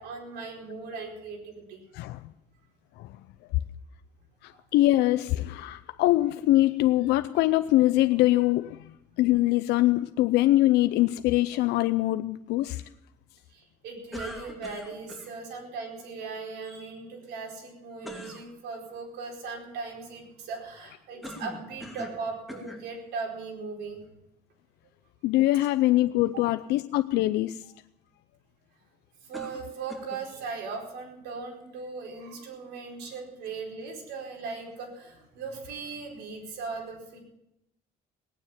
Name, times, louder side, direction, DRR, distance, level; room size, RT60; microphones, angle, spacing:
voice 1, 0.0-1.8 4.5-4.6 13.5-24.0 26.3-26.4 29.2-37.2, right 4 dB, 80° right, 0 dB, 4.6 m, -38 dB
voice 2, 4.4-8.9 9.2-12.8 25.2-27.6, left 16 dB, 85° left, 11 dB, 0.5 m, -23 dB
sound 1, 14.1-15.3 18.0-18.5 21.2-22.2 22.5-22.9 23.7-23.8 29.3-30.2, left 1 dB, ahead, 2.7 m, -41 dB
18.0 x 9.3 x 7.4 m, 0.85 s
cardioid pair, 110°, 17 cm